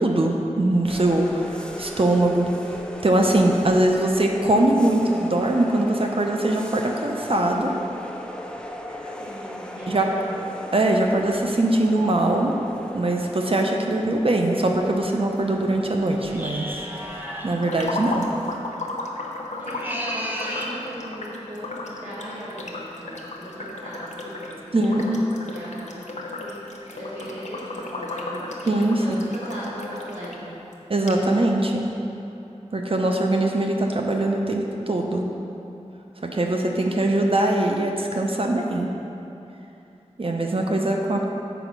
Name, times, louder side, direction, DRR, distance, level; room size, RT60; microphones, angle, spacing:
voice 1, 0.0-2.5 3.0-7.7 9.9-10.2 10.7-12.6 12.9-16.8 17.4-18.3 24.7-25.2 28.7-29.0 30.9-31.8 32.7-35.3 36.2-38.9 40.2-41.3, right 1 dB, 50° right, 1 dB, 0.7 m, -22 dB
sound 1, 0.9-18.6, equal, 10° left, 0.6 m, -38 dB
voice 2, 9.2-10.4 19.5-26.6 26.9-28.5 28.9-30.6, right 1 dB, 85° right, -10 dB, 1.6 m, -38 dB
sound 2, 16.3-17.6 19.6-20.8, equal, 15° right, 1.0 m, -32 dB
sound 3, 17.6-30.4 30.7-30.8 31.1-31.2, left 2 dB, 75° left, 0.8 m, -34 dB
7.0 x 5.1 x 6.0 m, 2.9 s
wide cardioid pair, 60°, 12 cm